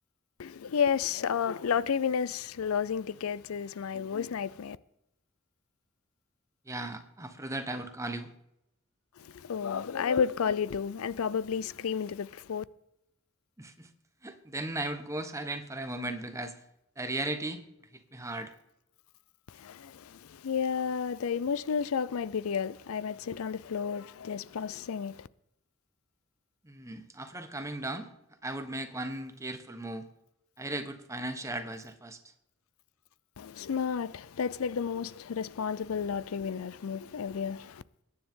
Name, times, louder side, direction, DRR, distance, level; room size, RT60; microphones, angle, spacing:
voice 1, 0.4-4.8 9.2-12.6 19.6-25.3 33.4-37.8, left 7 dB, 80° left, 0.5 m, -32 dB
voice 2, 6.7-8.3 13.6-13.9 14.2-16.5 17.0-17.6 17.9-18.5 26.6-28.1 28.4-30.0 30.6-32.3, right 2 dB, 15° right, 1.1 m, -37 dB
21.0 x 9.8 x 3.7 m
head